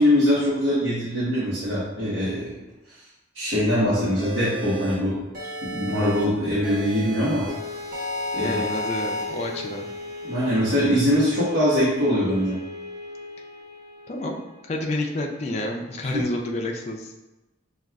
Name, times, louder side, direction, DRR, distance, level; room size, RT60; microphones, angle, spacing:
voice 1, 0.0-2.5 3.3-7.5 8.3-8.6 10.2-12.6 16.1-16.2, equal, 75° right, -10 dB, 1.2 m, -22 dB
sound 1, 4.2-4.9 5.3-6.2 6.6-7.5 7.9-9.2, equal, 50° right, 1.0 m, -32 dB
sound 2, 7.5-15.2, left 2 dB, 35° right, 0.6 m, -37 dB
voice 2, 8.4-9.9 14.1-14.4 14.7-17.1, left 1 dB, 35° left, 1 dB, 0.4 m, -29 dB
6.1 x 2.3 x 2.3 m, 1.0 s
head